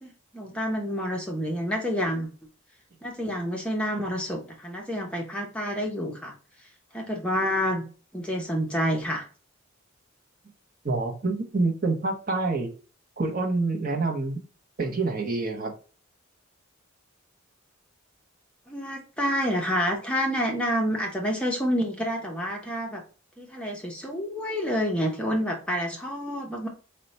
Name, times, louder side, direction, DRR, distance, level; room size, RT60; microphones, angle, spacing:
voice 1, 0.0-2.3 3.0-6.3 6.9-7.8 8.1-9.3 18.7-23.0 23.4-26.7, equal, 5° left, 0 dB, 0.6 m, -28 dB
voice 2, 10.8-12.7 13.2-14.4 14.8-15.7, right 3 dB, 40° right, 3 dB, 0.7 m, -27 dB
4.4 x 2.1 x 3.9 m, 0.38 s
head